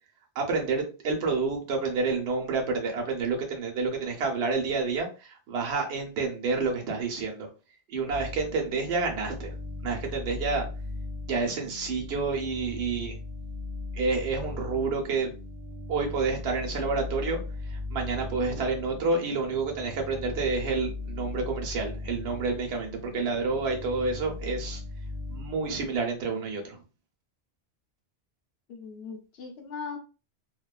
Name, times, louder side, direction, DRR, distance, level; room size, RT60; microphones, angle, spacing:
voice 1, 0.4-7.5 7.9-9.5 9.8-10.7 11.3-13.2 13.9-15.3 15.9-17.4 17.7-24.8 25.3-26.8, right 4 dB, 70° right, 2 dB, 0.9 m, -29 dB
sound 1, 8.1-25.9, left 2 dB, 50° right, 0.3 m, -38 dB
voice 2, 28.7-30.0, left 5 dB, 65° left, 3 dB, 0.8 m, -39 dB
2.6 x 2.2 x 2.3 m, 0.32 s
omnidirectional pair, 1.2 m